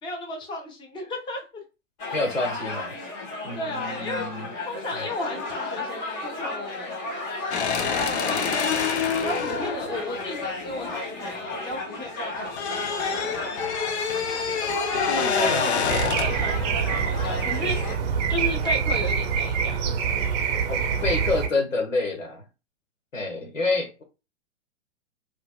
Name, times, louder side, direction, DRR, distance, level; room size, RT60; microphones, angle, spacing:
voice 1, 0.0-1.6 3.5-4.3 4.7-7.1 7.8-8.8 9.2-14.4 14.8-17.8 18.3-20.4, left 2 dB, 10° left, 0.9 m, -35 dB
sound 1, 2.0-18.0, left 2 dB, 30° left, 1.4 m, -34 dB
voice 2, 2.1-2.9 3.4-4.5 4.9-5.1 8.2-8.4 15.3-15.6 20.7-22.4 23.1-24.0, left 3 dB, 80° left, 1.3 m, -28 dB
sound 2, 7.5-11.8 12.1-16.5, left 6 dB, 60° left, 0.7 m, -27 dB
sound 3, 15.9-21.5, right 6 dB, 35° right, 0.7 m, -25 dB
4.3 x 2.5 x 2.3 m
figure-of-eight pair, 110°, 38 cm